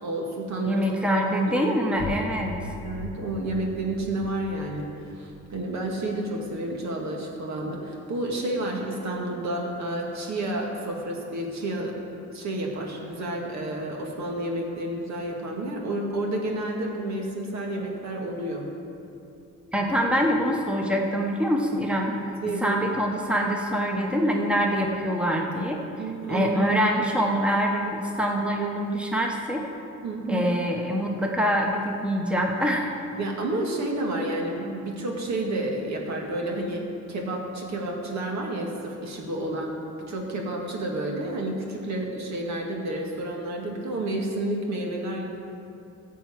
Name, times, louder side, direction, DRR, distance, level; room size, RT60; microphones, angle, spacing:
voice 1, 0.0-1.2 1.8-2.0 2.8-4.9 5.2-11.9 12.3-18.7 22.4-22.8 26.0-26.6 27.3-27.4 30.0-30.5 33.1-39.7 40.1-45.2, right 1 dB, 65° right, 0 dB, 2.1 m, -30 dB
voice 2, 0.7-2.7 19.7-22.1 22.6-25.8 26.3-29.6 30.3-33.0, equal, 5° right, 0 dB, 1.2 m, -25 dB
sound 1, 1.9-7.5, left 3 dB, 45° left, 0.9 m, -40 dB
13.5 x 4.6 x 8.5 m, 2.7 s
cardioid pair, 90°, 30 cm